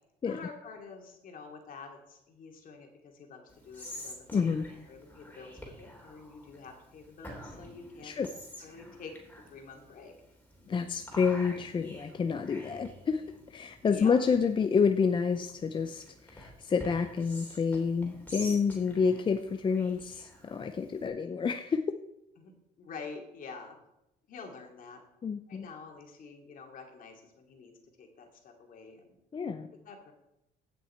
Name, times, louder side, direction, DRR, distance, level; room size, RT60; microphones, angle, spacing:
voice 1, 0.2-4.4 4.9-9.1 9.5-10.1 13.8-14.2 22.4-22.5 22.8-23.8 24.3-25.0 25.5-29.2 29.8-30.1, left 4 dB, 55° left, 3 dB, 2.6 m, -47 dB
Whispering, 3.5-21.1, equal, 10° left, 3.1 m, -49 dB
voice 2, 4.3-4.6 8.0-8.3 10.7-21.8 25.2-25.7 29.3-29.7, left 5 dB, 30° left, 8 dB, 0.5 m, -29 dB
16.5 x 6.2 x 4.4 m, 0.86 s
cardioid pair, 110°, 17 cm